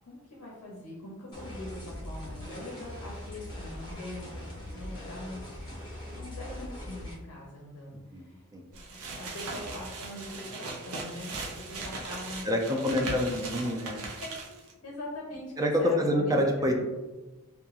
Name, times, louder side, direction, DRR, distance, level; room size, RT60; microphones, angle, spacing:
voice 1, 0.1-5.6 6.0-8.4 9.2-12.9 14.2-16.3 16.6-16.7, left 1 dB, 85° left, -3 dB, 0.6 m, -43 dB
sound 1, 1.3-7.1, left 1 dB, 20° left, 0.8 m, -41 dB
sound 2, 8.7-14.7, right 3 dB, 70° right, 0.5 m, -39 dB
voice 2, 12.4-14.0 15.6-16.8, left 1 dB, 15° right, 2 dB, 0.3 m, -27 dB
2.8 x 2.2 x 2.4 m, 1.1 s
head